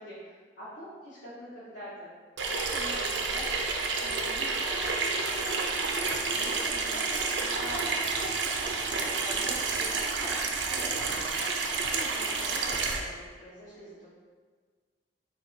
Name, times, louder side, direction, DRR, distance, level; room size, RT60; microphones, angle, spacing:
voice 1, 0.0-2.1 2.5-5.4 6.3-11.4 11.9-14.1, equal, 85° left, -12 dB, 1.3 m, -44 dB
Water tap faucet / Sink (filling or washing), 2.4-13.0, right 4 dB, 85° right, 0.5 m, -30 dB
4.5 x 2.6 x 4.4 m, 1.5 s
head